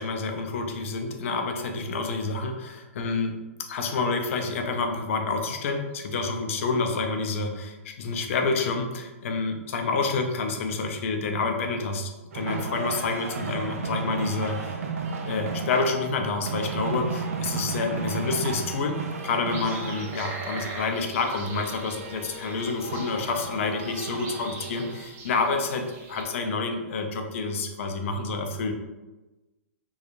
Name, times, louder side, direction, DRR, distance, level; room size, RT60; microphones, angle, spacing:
voice 1, 0.0-14.8 15.2-19.0 19.2-28.7, left 4 dB, 60° left, 4 dB, 0.4 m, -28 dB
sound 1, 12.3-25.0, right 4 dB, 80° right, 0.4 m, -34 dB
sound 2, 19.5-26.2, right 3 dB, 30° right, 0.6 m, -42 dB
2.8 x 2.3 x 2.4 m, 1.1 s
hypercardioid pair, 130°, 8 cm